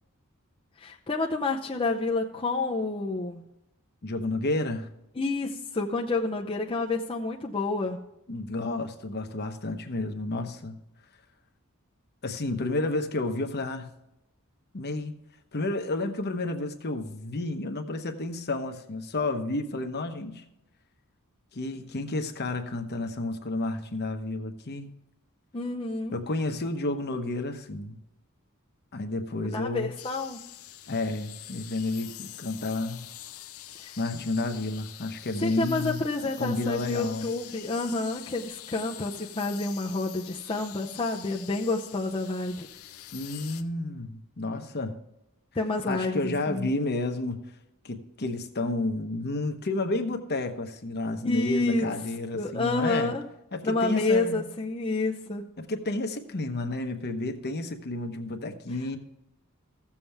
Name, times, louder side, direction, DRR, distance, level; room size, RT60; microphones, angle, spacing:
voice 1, 0.8-3.4 5.2-8.0 25.5-26.2 29.4-30.4 33.8-34.0 35.4-42.7 45.5-46.7 51.2-51.8 52.3-53.2 53.6-55.4, left 3 dB, 25° left, 0.6 m, -29 dB
voice 2, 4.0-4.9 8.3-10.8 12.2-13.9 14.7-15.1 15.5-20.4 21.5-24.9 26.1-28.0 28.9-29.9 30.9-33.0 33.7-36.0 36.4-37.3 43.1-44.9 45.9-47.4 47.8-53.1 53.5-54.4 55.6-59.0, left 2 dB, 50° left, 1.0 m, -31 dB
sound 1, 30.0-43.6, left 13 dB, 70° left, 0.7 m, -45 dB
15.0 x 7.2 x 3.4 m
head